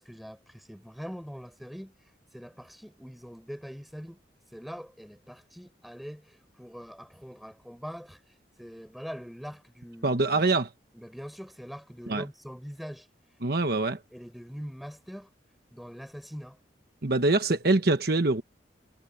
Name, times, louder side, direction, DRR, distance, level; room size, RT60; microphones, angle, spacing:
voice 1, 0.0-1.9 2.3-4.2 4.5-8.2 8.6-10.5 10.9-13.1 14.1-15.3 15.7-16.6, equal, ahead, 4.6 m, -43 dB
voice 2, 10.0-10.7 12.1-12.2 13.4-14.0 17.0-18.4, right 2 dB, 60° right, 1.2 m, -24 dB
head